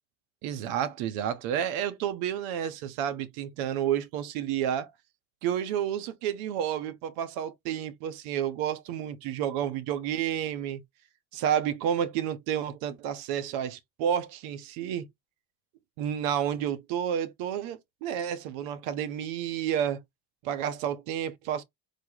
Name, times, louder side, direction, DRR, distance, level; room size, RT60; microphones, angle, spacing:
voice 1, 0.4-4.9 5.4-10.8 11.3-15.1 16.0-20.0 20.4-21.6, right 9 dB, 80° right, 0.6 m, -30 dB
3.2 x 2.0 x 3.8 m
hypercardioid pair, 60°, 49 cm